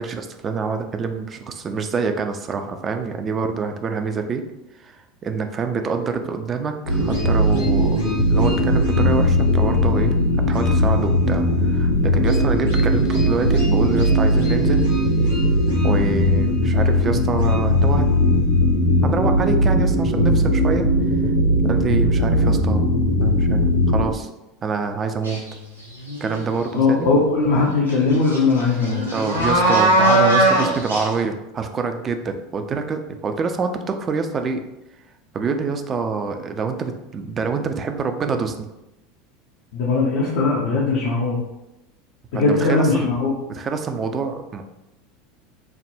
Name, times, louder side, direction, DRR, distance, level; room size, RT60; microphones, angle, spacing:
voice 1, 0.0-4.4 4.8-8.0 8.3-10.2 10.5-14.8 15.8-18.2 19.0-20.9 21.6-22.9 23.2-24.3 24.6-25.4 26.2-27.1 29.1-34.6 35.3-38.7 42.3-43.1 43.5-44.6, right 5 dB, 30° right, 6 dB, 0.3 m, -26 dB
sound 1, 6.9-24.1, equal, 85° left, 1.3 m, -18 dB
sound 2, 25.2-25.5 26.0-26.6 27.9-28.0 28.3-31.1, right 1 dB, 90° right, 0.6 m, -19 dB
voice 2, 26.7-29.0 39.7-41.4 42.3-43.3, left 3 dB, 60° left, -3 dB, 0.5 m, -19 dB
3.3 x 2.1 x 2.6 m, 0.91 s
figure-of-eight pair, 75°, 0 cm